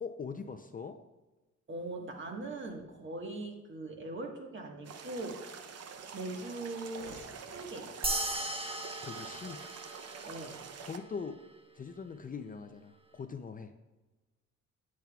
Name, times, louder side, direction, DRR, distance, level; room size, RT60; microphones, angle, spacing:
voice 1, 0.0-1.0 9.0-9.6 10.8-11.4 11.7-13.7, left 5 dB, 30° left, 7 dB, 0.5 m, -41 dB
voice 2, 1.7-5.6 6.1-8.2 10.2-10.6, right 2 dB, 40° right, 2 dB, 1.6 m, -41 dB
sound 1, 2.4-2.8 4.1-4.2 4.6-4.7 4.9-6.6 7.0-8.6 8.8-8.9 9.7-9.8 11.9-12.0, right 2 dB, 80° right, 1.5 m, -55 dB
sound 2, 4.8-11.0, right 6 dB, 55° right, 0.8 m, -47 dB
sound 3, 8.0-10.8, right 1 dB, 20° right, 1.0 m, -37 dB
9.2 x 8.7 x 2.4 m, 1.1 s
cardioid pair, 90°, 30 cm